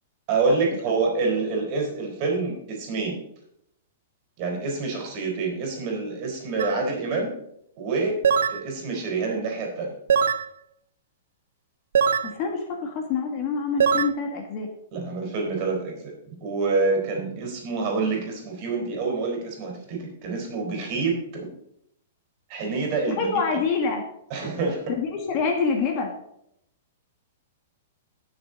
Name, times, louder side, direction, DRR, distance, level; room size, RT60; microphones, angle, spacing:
voice 1, 0.3-3.2 4.4-7.3 7.8-8.1 8.5-9.9 14.9-21.5 22.5-23.3 24.3-24.8, right 4 dB, 35° right, 1 dB, 4.2 m, -27 dB
sound 1, 6.6-6.8 8.2-8.6 10.1-10.5 12.0-12.3 13.8-14.1, right 7 dB, 85° right, 0.5 m, -21 dB
voice 2, 12.2-14.7 23.0-24.0 24.9-26.1, left 5 dB, 35° left, 3 dB, 1.7 m, -26 dB
17.5 x 6.8 x 4.0 m, 0.76 s
hypercardioid pair, 165°, 0 cm